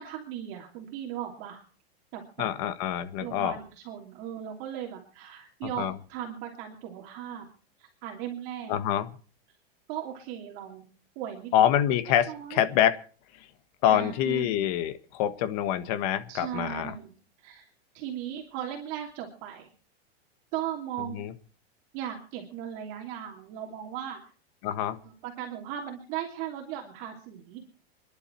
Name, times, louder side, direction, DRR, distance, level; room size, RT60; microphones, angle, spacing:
voice 1, 0.0-1.6 2.1-2.5 3.2-7.5 7.8-8.7 9.9-10.8 11.2-11.5 12.1-12.7 13.9-14.6 16.3-17.6 17.9-19.7 20.5-21.2 21.9-24.2 25.0-27.6, right 10 dB, 35° right, 1 dB, 2.8 m, -37 dB
voice 2, 2.4-3.6 5.6-6.0 8.7-9.0 11.5-13.0 13.8-17.0 21.0-21.3 24.6-25.0, left 10 dB, 40° left, 12 dB, 1.5 m, -26 dB
27.0 x 11.0 x 4.5 m, 0.40 s
supercardioid pair, 170°, 31 cm